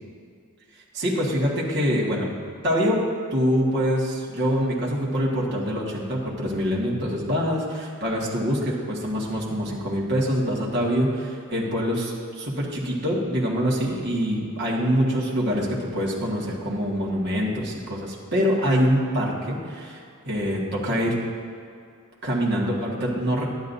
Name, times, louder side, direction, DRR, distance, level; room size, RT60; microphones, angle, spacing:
voice 1, 0.9-2.3 2.6-3.0 3.3-21.2 22.2-23.5, equal, 50° right, -4 dB, 1.7 m, -25 dB
12.0 x 10.5 x 2.7 m, 2.3 s
head